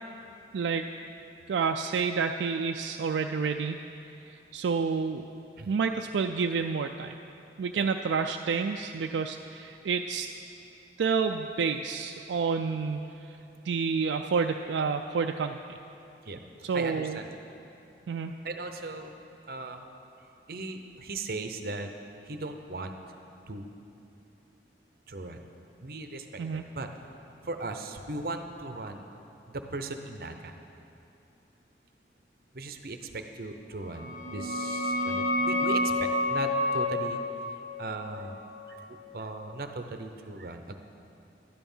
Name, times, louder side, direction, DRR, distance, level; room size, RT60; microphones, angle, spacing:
voice 1, 0.5-0.9 1.5-3.8 4.3-5.3 5.7-7.1 7.6-10.3 11.0-13.4 13.6-15.6 16.6-17.2 18.1-18.4 26.4-26.6, right 5 dB, 85° right, 4 dB, 0.4 m, -29 dB
voice 2, 16.7-17.4 18.4-19.1 19.5-19.9 20.5-21.9 22.3-22.9 23.5-23.7 25.1-25.4 25.8-26.9 27.4-29.0 29.5-30.5 32.5-37.2 37.8-38.4 38.7-38.8 39.1-40.7, right 2 dB, 55° right, 6 dB, 0.7 m, -38 dB
sound 1, 33.9-39.3, left 1 dB, 45° left, 1.0 m, -30 dB
12.0 x 9.2 x 5.5 m, 2.9 s
head